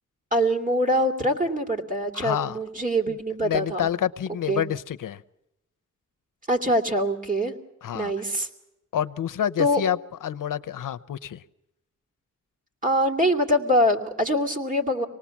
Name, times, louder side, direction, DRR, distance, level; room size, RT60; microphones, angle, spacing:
voice 1, 0.3-3.9 4.5-4.6 6.5-7.5 7.9-8.5 9.6-9.8 12.8-15.1, equal, 25° right, 4 dB, 2.7 m, -24 dB
voice 2, 2.1-2.6 3.1-3.2 3.4-5.2 7.8-8.1 8.9-11.4, left 10 dB, 80° left, 13 dB, 0.8 m, -28 dB
26.0 x 19.0 x 7.2 m, 0.91 s
wide cardioid pair, 150°, 32 cm